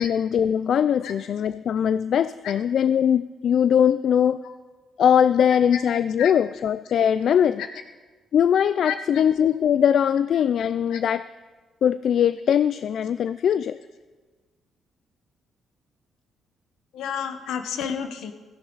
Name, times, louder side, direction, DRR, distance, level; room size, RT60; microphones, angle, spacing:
voice 1, 0.0-4.4 5.0-7.6 8.3-11.2 11.8-13.8, left 8 dB, 65° left, 14 dB, 0.3 m, -21 dB
voice 2, 5.4-5.8 6.2-6.3 7.6-7.7 8.8-9.2 10.3-10.4 10.9-11.0 16.9-18.3, left 7 dB, 85° left, 7 dB, 1.2 m, -31 dB
16.5 x 13.0 x 4.0 m, 1.3 s
cardioid pair, 80°, 0 cm